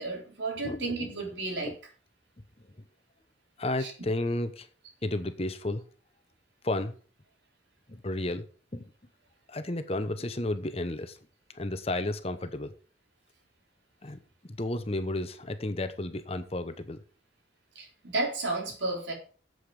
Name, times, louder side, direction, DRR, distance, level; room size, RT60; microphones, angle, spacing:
voice 1, 0.0-1.7 3.8-3.9 17.7-19.1, right 3 dB, 70° right, 4.2 m, -32 dB
voice 2, 0.6-1.1 1.6-1.7 3.6-4.7 5.0-5.8 6.6-6.9 7.9-8.4 8.7-8.9 9.5-11.2 11.5-12.7 14.0-14.2 14.5-17.0, left 1 dB, 30° left, 1.0 m, -32 dB
8.4 x 8.0 x 6.9 m
head